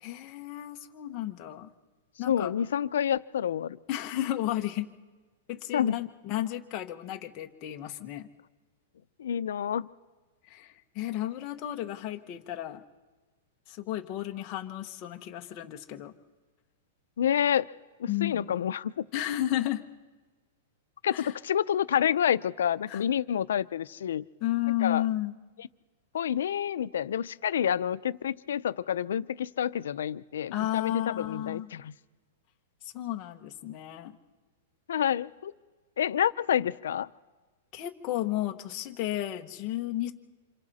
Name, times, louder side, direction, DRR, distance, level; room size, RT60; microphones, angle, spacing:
voice 1, 0.0-1.7 2.2-2.5 3.9-4.9 5.5-8.3 10.5-12.8 13.7-16.1 18.1-18.5 19.1-19.8 21.1-21.3 22.9-23.0 24.4-25.3 30.5-31.7 32.8-34.2 37.7-40.1, left 13 dB, 25° left, 4 dB, 1.0 m, -33 dB
voice 2, 2.3-3.8 5.7-6.0 9.2-9.9 17.2-17.7 18.0-19.1 21.0-24.2 24.8-25.0 25.6-25.7 26.1-31.9 34.9-35.5 36.0-37.1, left 9 dB, 85° left, 14 dB, 0.6 m, -28 dB
29.0 x 27.0 x 4.2 m, 1.3 s
supercardioid pair, 180°, 0 cm